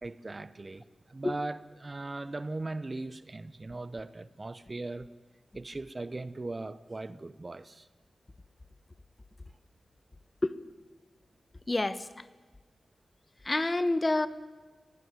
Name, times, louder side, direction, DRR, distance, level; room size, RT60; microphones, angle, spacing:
voice 1, 0.0-5.1 5.5-7.9, right 2 dB, 35° right, 16 dB, 0.9 m, -39 dB
voice 2, 11.7-12.2 13.4-14.3, left 2 dB, 30° left, 14 dB, 1.1 m, -28 dB
18.5 x 16.5 x 9.6 m, 1.4 s
cardioid pair, 60°, 0 cm